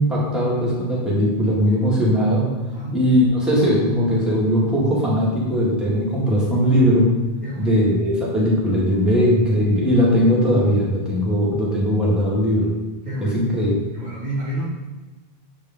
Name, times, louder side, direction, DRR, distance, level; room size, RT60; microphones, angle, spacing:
voice 1, 0.0-2.5 2.9-7.1 7.6-12.7 13.2-13.7, equal, ahead, -6 dB, 1.7 m, -19 dB
voice 2, 7.4-7.7 13.0-13.5 13.9-14.7, right 1 dB, 45° right, -7 dB, 1.5 m, -29 dB
7.4 x 4.8 x 3.7 m, 1.2 s
omnidirectional pair, 1.0 m